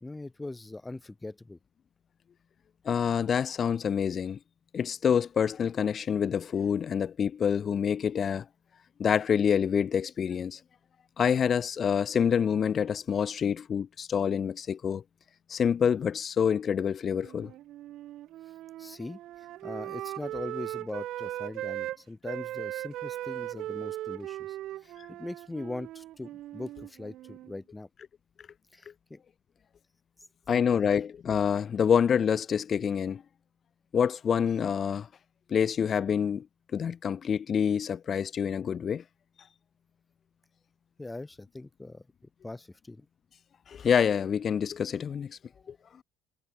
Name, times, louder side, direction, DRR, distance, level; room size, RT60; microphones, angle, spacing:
voice 1, 0.0-1.6 18.8-24.6 24.8-27.9 28.7-29.2 30.5-30.9 41.0-42.1 42.4-43.1, left 2 dB, 15° left, 2.0 m, -41 dB
voice 2, 2.9-4.4 4.7-8.5 9.0-10.6 11.2-15.0 15.5-17.5 30.5-33.2 33.9-35.1 35.5-36.5 36.7-39.0 43.7-45.4 45.7-45.8, left 7 dB, 40° left, 0.3 m, -27 dB
Wind instrument woodwind instrument, 17.0-22.0 22.2-27.5, right 14 dB, 55° right, 1.0 m, -39 dB
hypercardioid pair, 65°, 0 cm